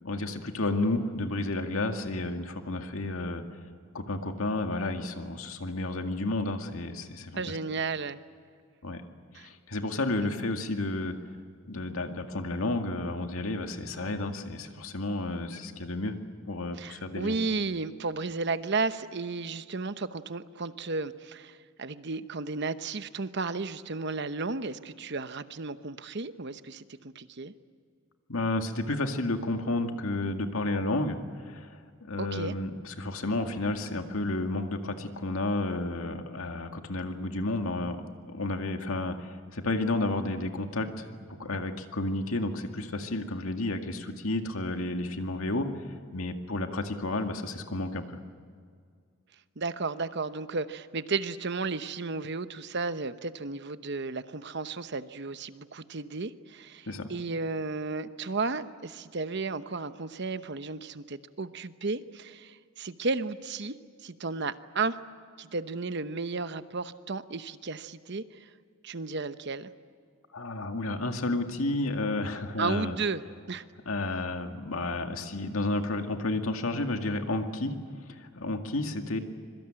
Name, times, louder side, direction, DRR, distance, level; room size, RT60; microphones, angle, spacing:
voice 1, 0.0-3.4 3.9-7.4 8.8-9.0 9.3-11.1 11.7-16.1 16.5-17.4 28.3-38.0 38.3-41.1 41.4-45.7 46.1-48.2 56.9-57.1 70.3-73.0 73.9-77.7 78.1-79.2, left 2 dB, 85° left, 5 dB, 2.1 m, -31 dB
voice 2, 7.3-8.2 9.3-9.5 16.7-27.5 32.2-32.6 49.6-63.7 64.0-65.0 65.4-68.5 68.8-69.7 72.6-73.2 73.5-73.6, right 4 dB, 55° right, 12 dB, 1.0 m, -33 dB
25.5 x 23.0 x 8.9 m, 2.1 s
head